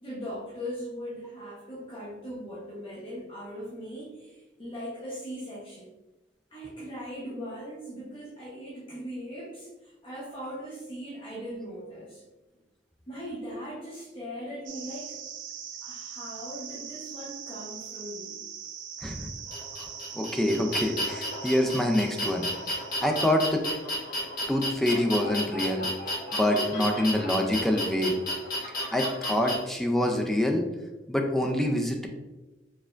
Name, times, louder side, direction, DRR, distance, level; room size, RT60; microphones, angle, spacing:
voice 1, 0.0-5.9 6.5-12.2 13.1-15.2 15.8-18.4 26.5-26.9, equal, 30° left, -8 dB, 0.9 m, -39 dB
sound 1, 14.7-23.8, right 8 dB, 85° right, 0.4 m, -42 dB
voice 2, 19.0-19.3 19.8-19.9 20.1-23.6 24.5-25.9 26.3-28.1 28.9-30.7 31.1-32.1, left 1 dB, ahead, 2 dB, 0.4 m, -26 dB
sound 2, 19.5-29.5, left 1 dB, 55° left, 1.3 m, -33 dB
4.3 x 3.4 x 2.5 m, 1.1 s
head